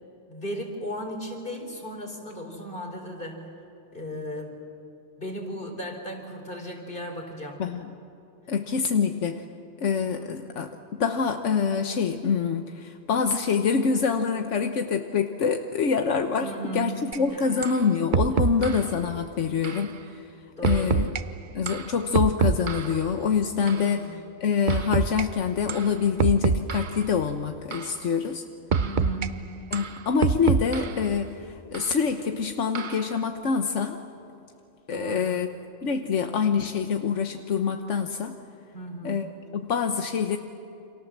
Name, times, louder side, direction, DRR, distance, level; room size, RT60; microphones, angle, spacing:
voice 1, 0.3-3.5 3.9-4.6 5.2-7.6 10.5-10.6 16.4-17.0 17.3-17.7 18.3-18.6 20.6-21.0 23.7-24.1 28.8-29.5 34.9-35.4 38.7-39.2, equal, 45° left, 2 dB, 4.2 m, -36 dB
voice 2, 8.5-9.4 9.8-10.7 11.0-20.2 20.6-21.1 21.5-24.1 24.4-28.4 29.7-34.0 34.9-35.5 35.8-38.3 39.0-39.3 39.5-40.4, left 6 dB, 85° left, 6 dB, 1.4 m, -25 dB
sound 1, 17.1-17.2 17.6-17.8 18.1-18.9 19.6-19.9 20.6-21.2 21.7-23.0 23.7-23.9 24.7-25.2 25.7-25.9 26.2-27.0 27.7-28.0 28.7-29.3 29.7-31.0 31.7-31.9 32.8-33.1, right 5 dB, 45° right, 0.9 m, -26 dB
29.5 x 26.5 x 7.4 m, 2.6 s
omnidirectional pair, 1.2 m